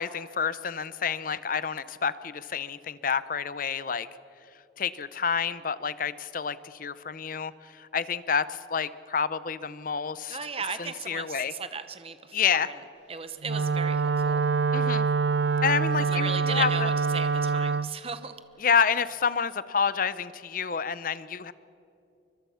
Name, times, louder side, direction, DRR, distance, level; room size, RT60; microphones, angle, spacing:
voice 1, 0.0-4.1 4.8-10.4 10.8-11.5 12.3-12.7 14.7-15.1 15.6-16.9 18.6-21.5, left 6 dB, 50° left, 16 dB, 0.7 m, -29 dB
voice 2, 10.3-12.7 13.1-14.5 16.1-18.3, right 5 dB, 30° right, 11 dB, 1.0 m, -36 dB
Wind instrument woodwind instrument, 13.4-17.9, right 5 dB, 65° right, 0.4 m, -25 dB
24.5 x 22.0 x 5.8 m, 2.8 s
head